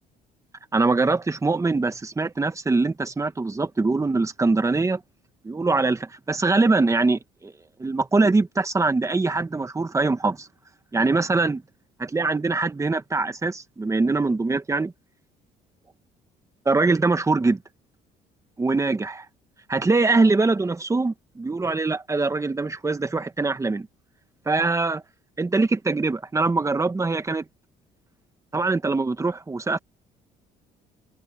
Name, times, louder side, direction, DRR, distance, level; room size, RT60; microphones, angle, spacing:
voice 1, 0.7-5.0 5.4-7.5 7.8-10.5 10.9-11.6 12.0-14.9 16.6-17.6 18.6-19.3 19.7-23.9 24.4-25.0 25.4-27.4 28.5-29.8, right 3 dB, 20° right, 1.7 m, -23 dB
cardioid pair, 110°, 17 cm